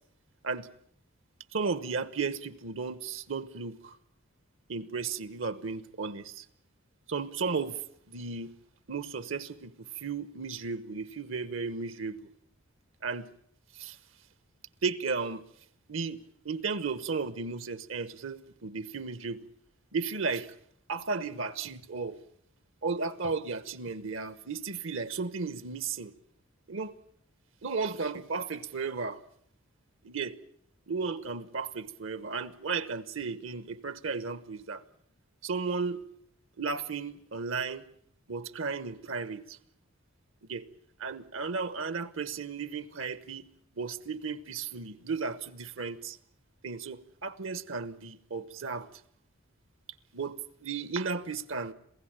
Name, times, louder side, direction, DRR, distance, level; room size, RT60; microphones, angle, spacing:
voice 1, 1.5-4.0 4.7-6.4 7.1-7.8 8.1-8.5 8.9-12.3 13.0-13.3 13.7-14.0 14.8-15.4 15.9-16.2 16.4-19.5 19.9-20.5 20.9-22.2 22.8-26.1 26.7-26.9 27.6-29.2 30.0-30.4 30.9-34.8 35.4-36.0 36.6-37.8 38.3-39.6 40.5-40.6 41.0-43.4 43.8-46.2 46.6-48.9 50.1-51.7, right 4 dB, 65° right, 1.1 m, -34 dB
27.0 x 16.5 x 8.8 m
head